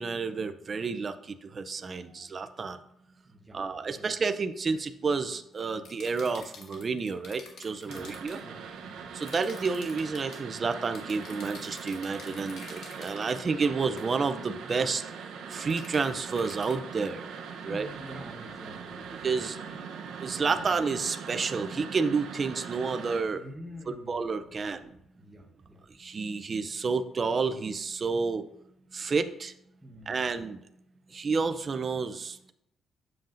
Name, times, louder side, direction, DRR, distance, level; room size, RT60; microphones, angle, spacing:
voice 1, 0.0-2.8 3.5-8.4 9.1-15.0 15.5-17.2 17.6-17.9 19.2-19.6 20.2-23.4 23.9-24.8 26.0-28.4 28.9-29.5 30.1-30.6 31.1-32.5, right 4 dB, 30° right, 9 dB, 0.4 m, -30 dB
voice 2, 3.3-3.7 4.0-4.1 7.9-8.1 8.4-9.0 17.7-19.3 23.3-24.2 24.5-24.9 25.2-25.8 29.8-30.2, equal, 10° right, 0 dB, 1.1 m, -47 dB
sound 1, 5.8-8.4 9.2-10.4 10.9-13.4 14.0-14.2 15.5-16.8, left 4 dB, 65° left, 1.4 m, -48 dB
sound 2, 7.9-23.2, right 6 dB, 75° right, 0.8 m, -41 dB
7.6 x 7.1 x 2.6 m, 0.77 s
cardioid pair, 165°, 0 cm